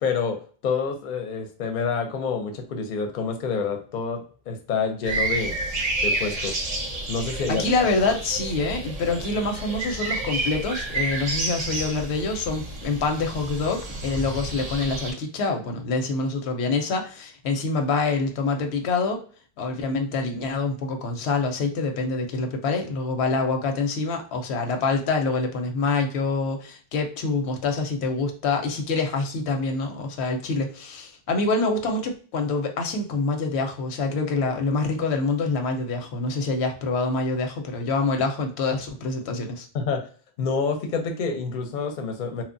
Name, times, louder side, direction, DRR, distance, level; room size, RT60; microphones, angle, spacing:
voice 1, 0.0-5.6 6.0-6.6 7.1-7.6 39.7-40.1 40.4-42.4, left 5 dB, 60° left, 5 dB, 0.6 m, -28 dB
sound 1, 5.0-15.1, right 2 dB, 45° right, 0.6 m, -30 dB
voice 2, 7.3-19.2 19.6-39.7, left 3 dB, 90° left, 5 dB, 0.8 m, -26 dB
2.9 x 2.1 x 2.5 m, 0.42 s
omnidirectional pair, 1.1 m